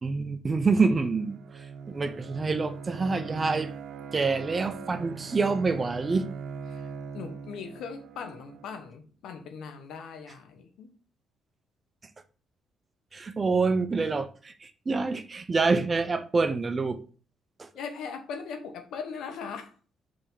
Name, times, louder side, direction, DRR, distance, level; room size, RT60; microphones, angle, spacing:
voice 1, 0.0-3.7 4.1-6.3 13.1-17.0 17.6-17.7, right 4 dB, 30° right, 0.7 m, -27 dB
Bowed string instrument, 1.1-8.9, right 6 dB, 75° right, 0.5 m, -41 dB
voice 2, 7.1-10.9 17.7-19.7, left 6 dB, 80° left, 1.1 m, -39 dB
5.1 x 3.4 x 5.5 m
cardioid pair, 90°, 0 cm